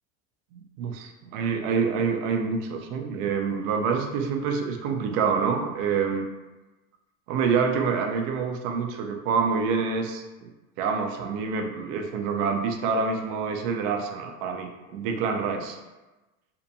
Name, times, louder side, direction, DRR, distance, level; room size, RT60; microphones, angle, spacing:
voice 1, 0.5-6.3 7.3-10.5 10.8-15.8, right 5 dB, 75° right, 4 dB, 0.5 m, -27 dB
2.6 x 2.2 x 2.6 m, 1.1 s
hypercardioid pair, 85°, 40 cm